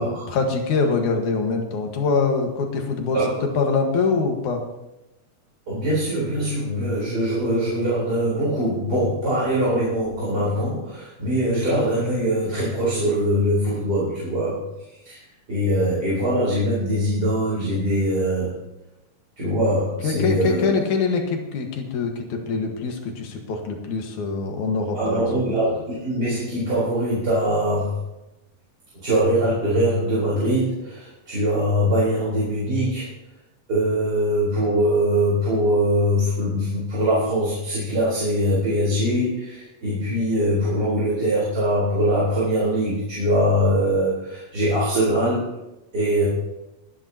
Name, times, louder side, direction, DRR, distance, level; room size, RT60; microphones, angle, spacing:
voice 1, 0.0-3.2 3.6-4.6 20.0-25.4, left 4 dB, 80° left, 3 dB, 3.0 m, -24 dB
voice 2, 3.1-3.4 5.7-14.6 14.9-15.2 15.5-18.5 19.4-20.7 24.9-28.0 29.0-33.1 33.7-45.4 45.9-46.3, equal, 30° right, -8 dB, 4.4 m, -22 dB
22.0 x 10.5 x 2.9 m, 0.94 s
omnidirectional pair, 3.4 m